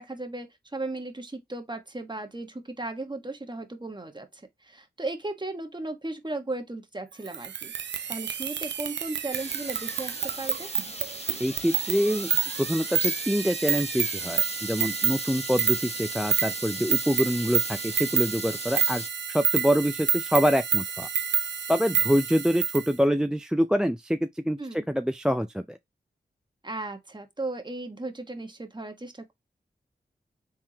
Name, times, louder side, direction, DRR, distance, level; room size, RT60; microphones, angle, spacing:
voice 1, 0.0-10.7 24.6-24.8 26.6-29.3, right 2 dB, 25° right, 1.3 m, -36 dB
sound 1, 7.3-22.9, right 8 dB, 75° right, 0.5 m, -29 dB
sound 2, 9.3-19.1, left 2 dB, 35° left, 1.1 m, -40 dB
voice 2, 11.4-12.3 12.6-21.1 21.7-25.8, equal, 5° right, 0.4 m, -26 dB
4.6 x 3.7 x 2.8 m
cardioid pair, 40°, 18 cm